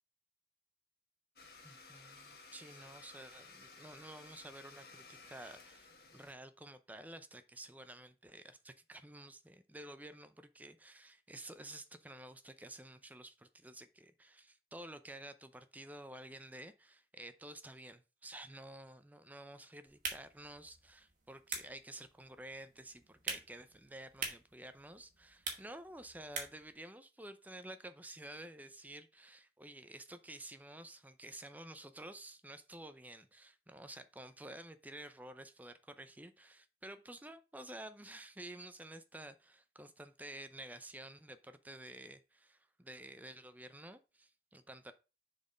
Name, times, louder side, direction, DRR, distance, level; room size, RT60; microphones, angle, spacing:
Domestic sounds home sounds, 1.4-6.3, left 4 dB, 55° left, 1.4 m, -56 dB
voice 1, 1.6-44.9, right 1 dB, 10° right, 0.5 m, -51 dB
sound 1, 19.9-26.7, right 5 dB, 45° right, 1.9 m, -46 dB
7.0 x 4.2 x 5.0 m
head